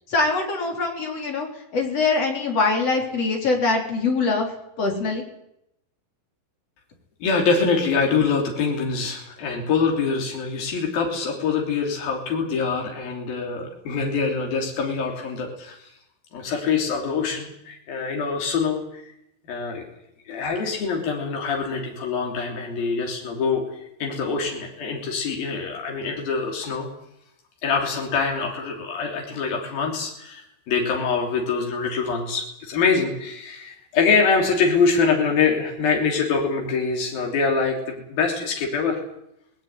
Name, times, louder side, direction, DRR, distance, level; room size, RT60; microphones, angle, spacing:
voice 1, 0.1-4.5 4.8-5.2, left 3 dB, 45° left, 2 dB, 4.8 m, -23 dB
voice 2, 7.2-15.8 16.3-19.1 19.5-19.8 20.3-26.9 27.6-39.0, left 5 dB, 80° left, 1 dB, 5.1 m, -24 dB
19.5 x 18.5 x 9.5 m, 0.78 s
omnidirectional pair, 4.1 m